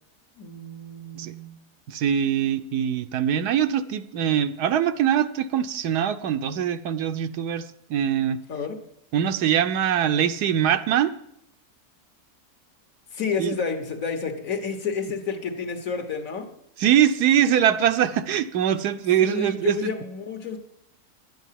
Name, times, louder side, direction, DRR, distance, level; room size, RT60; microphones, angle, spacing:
voice 1, 0.4-1.6 8.5-8.8 13.1-16.5 19.2-20.6, left 5 dB, 55° left, 5 dB, 1.7 m, -30 dB
voice 2, 1.9-8.4 9.1-11.1 13.4-13.5 16.8-19.9, right 9 dB, 80° right, 10 dB, 1.3 m, -23 dB
11.5 x 9.2 x 7.5 m, 0.75 s
omnidirectional pair, 1.7 m